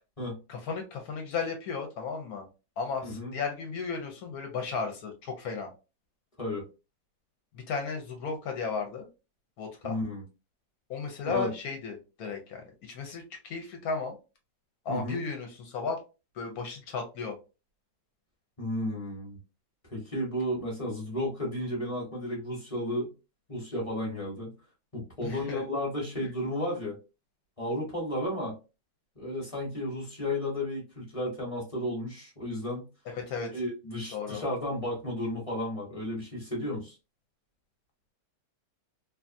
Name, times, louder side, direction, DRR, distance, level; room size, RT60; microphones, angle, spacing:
voice 1, 0.5-2.5 2.8-5.7 7.5-9.1 9.6-10.0 10.9-14.2 14.8-16.0 16.3-17.4 25.2-25.7 26.2-26.3 33.1-33.6 34.1-34.4, left 5 dB, 65° left, 4 dB, 1.0 m, -35 dB
voice 2, 3.0-3.3 6.4-6.6 9.8-10.2 11.2-11.5 14.9-15.2 18.6-19.4 19.9-23.1 23.5-24.5 24.9-26.9 27.6-28.5 29.2-32.9 33.5-36.9, left 1 dB, 25° left, -3 dB, 0.8 m, -33 dB
2.7 x 2.3 x 2.5 m, 0.29 s
omnidirectional pair, 1.9 m